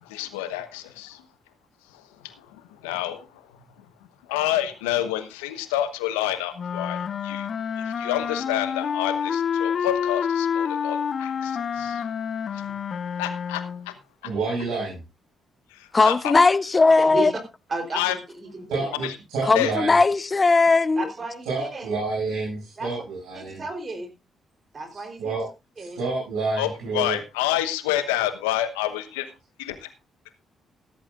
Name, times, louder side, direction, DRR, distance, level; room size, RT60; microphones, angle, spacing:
voice 1, 0.0-1.2 1.9-3.4 4.3-7.5 7.8-12.0 12.5-12.7 13.2-14.0 15.7-16.3 17.9-18.1 19.0-19.1 19.5-19.7 26.6-29.3 29.6-29.9, left 13 dB, 85° left, 1.1 m, -28 dB
sound 1, 6.6-13.9, left 7 dB, 55° left, 0.7 m, -28 dB
voice 2, 14.2-15.0 18.7-19.9 21.4-23.6 24.9-25.5 25.7-27.2, right 3 dB, 80° right, 6.8 m, -29 dB
voice 3, 15.9-17.3 19.5-21.1, left 3 dB, 35° left, 0.9 m, -18 dB
voice 4, 17.7-19.0 21.0-21.9 22.8-22.9 23.3-24.1 24.7-25.3 25.8-26.0, right 3 dB, 45° right, 3.6 m, -33 dB
14.5 x 13.5 x 2.5 m
hypercardioid pair, 40°, 0 cm